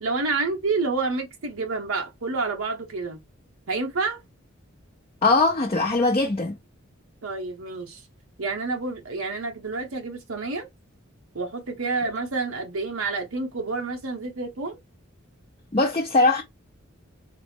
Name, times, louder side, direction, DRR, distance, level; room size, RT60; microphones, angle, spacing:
voice 1, 0.0-3.2 3.7-4.2 7.2-8.0 8.4-10.7 11.3-14.8, right 3 dB, 90° right, 0.8 m, -29 dB
voice 2, 5.2-6.6 15.7-16.4, left 3 dB, 30° left, 0.5 m, -21 dB
4.1 x 2.0 x 3.4 m
head